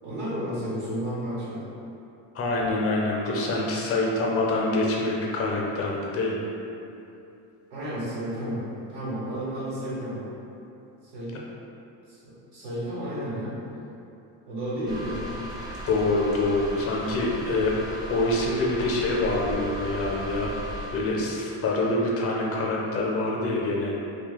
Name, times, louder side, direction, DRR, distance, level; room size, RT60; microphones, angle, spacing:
voice 1, 0.0-1.7 7.7-10.3 11.1-11.4 12.1-13.6 14.5-15.2, equal, 75° right, -9 dB, 1.1 m, -32 dB
voice 2, 2.3-6.4 15.8-17.7 18.1-20.5 20.9-23.9, left 2 dB, 35° left, -3 dB, 0.6 m, -25 dB
sound 1, 14.9-21.2, equal, 10° right, 0.5 m, -37 dB
2.7 x 2.3 x 4.0 m, 2.8 s
cardioid pair, 130°, 41 cm